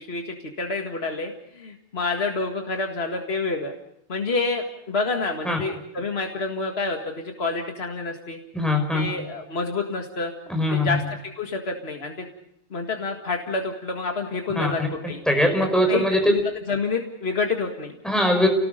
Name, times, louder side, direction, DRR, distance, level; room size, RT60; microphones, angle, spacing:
voice 1, 0.0-3.7 4.1-8.4 8.9-10.3 10.7-12.3 12.7-15.2 15.7-18.0, left 3 dB, 65° left, 3 dB, 2.2 m, -28 dB
voice 2, 8.5-9.1 10.5-11.0 14.6-14.9 15.3-16.3 18.0-18.5, left 1 dB, ahead, 4 dB, 5.3 m, -21 dB
29.5 x 19.5 x 5.2 m, 0.78 s
omnidirectional pair, 1.1 m